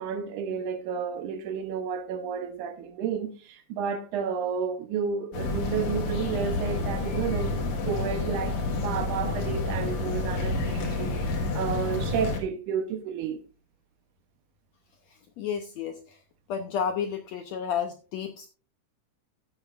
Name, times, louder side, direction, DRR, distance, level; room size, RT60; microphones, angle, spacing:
voice 1, 0.0-7.6 7.9-11.1 11.5-13.4, right 6 dB, 70° right, 2.2 m, -31 dB
sound 1, 5.3-12.4, left 2 dB, 60° left, 2.7 m, -29 dB
voice 2, 15.1-16.2 16.5-18.5, left 7 dB, 75° left, 1.6 m, -32 dB
15.0 x 8.1 x 2.5 m
omnidirectional pair, 3.9 m